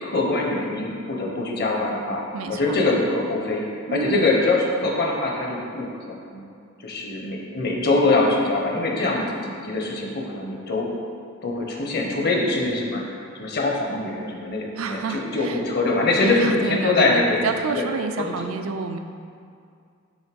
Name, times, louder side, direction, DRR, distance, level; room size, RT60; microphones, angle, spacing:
voice 1, 0.0-2.2 2.5-3.6 3.9-6.4 6.8-10.9 11.4-17.4 17.7-17.9 18.2-18.5, left 2 dB, 50° left, -1 dB, 0.8 m, -23 dB
voice 2, 3.9-4.2 14.8-15.6 16.2-19.0, right 5 dB, 85° right, 6 dB, 0.4 m, -29 dB
6.4 x 3.0 x 5.2 m, 2.3 s
head